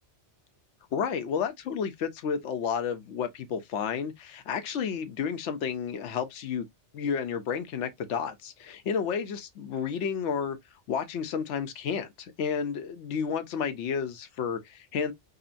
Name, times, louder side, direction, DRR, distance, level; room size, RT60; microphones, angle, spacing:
voice 1, 0.9-6.7 6.9-10.6 10.9-15.1, left 7 dB, 75° left, 1.0 m, -31 dB
3.8 x 2.1 x 2.4 m
omnidirectional pair, 1.2 m